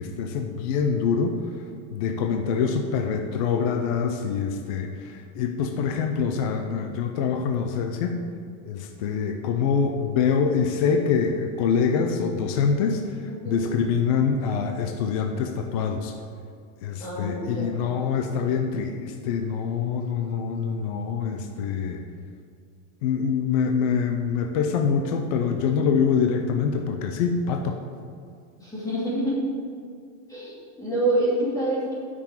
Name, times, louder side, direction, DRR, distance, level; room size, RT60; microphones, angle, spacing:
voice 1, 0.0-1.4 1.9-4.9 5.3-8.2 8.6-13.0 13.5-16.1 16.8-22.0 23.0-27.7, left 6 dB, 30° left, 4 dB, 0.4 m, -25 dB
voice 2, 13.3-13.7 17.0-17.8 28.6-29.4 30.3-31.9, right 1 dB, 10° left, -7 dB, 2.6 m, -27 dB
8.6 x 6.0 x 8.1 m, 2.3 s
supercardioid pair, 170°, 41 cm